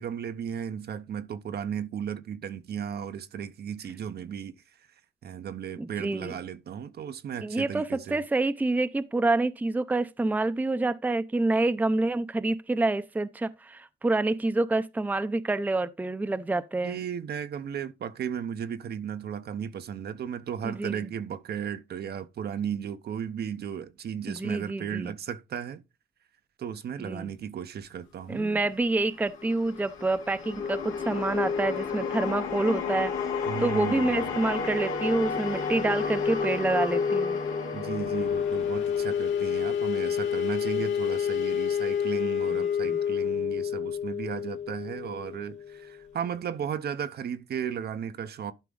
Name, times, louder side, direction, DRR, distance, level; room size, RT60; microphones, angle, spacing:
voice 1, 0.0-4.6 5.2-8.2 16.8-25.8 26.6-28.6 33.5-34.4 37.7-48.5, right 8 dB, 55° right, 0.7 m, -35 dB
voice 2, 5.8-6.4 7.4-17.0 20.6-21.1 24.3-25.1 27.0-27.3 28.3-37.4 42.5-43.0, right 2 dB, 10° right, 0.5 m, -27 dB
sound 1, 29.0-39.4, left 5 dB, 90° left, 2.2 m, -31 dB
sound 2, 33.7-46.2, left 8 dB, 70° left, 2.8 m, -30 dB
11.5 x 4.9 x 3.8 m
cardioid pair, 90°, 20 cm